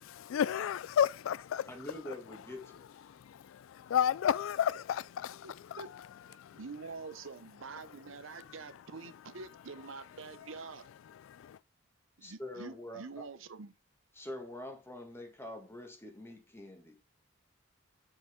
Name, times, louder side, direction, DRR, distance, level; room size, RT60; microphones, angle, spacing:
voice 1, 0.1-1.7 3.1-5.8 6.4-6.6 11.2-11.6, left 9 dB, 75° left, 0.3 m, -32 dB
voice 2, 1.7-2.8 12.2-13.3 14.2-17.0, left 1 dB, 10° left, 1.6 m, -45 dB
voice 3, 5.4-5.9 6.3-10.9 12.2-13.7, right 4 dB, 70° right, 0.7 m, -46 dB
7.2 x 6.2 x 3.6 m
head